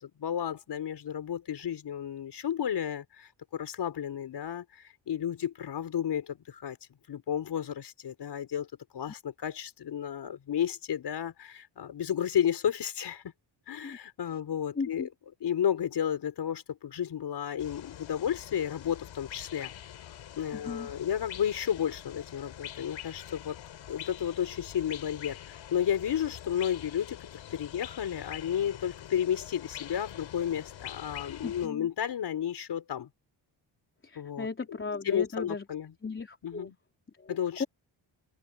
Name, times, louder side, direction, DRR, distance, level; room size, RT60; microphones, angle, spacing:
voice 1, 0.0-6.8 7.1-8.7 8.9-13.2 13.7-15.1 15.4-19.7 20.4-23.6 23.9-33.1 34.2-34.5 35.0-35.9 36.4-36.7 37.3-37.6, left 9 dB, 60° left, 4.3 m, -32 dB
voice 2, 14.7-15.1 20.5-20.9 31.4-31.9 34.0-35.6 36.0-36.7 37.2-37.6, left 4 dB, 25° left, 3.9 m, -36 dB
sound 1, 17.6-31.7, left 11 dB, 85° left, 4.5 m, -45 dB
open air
cardioid pair, 120°, 44 cm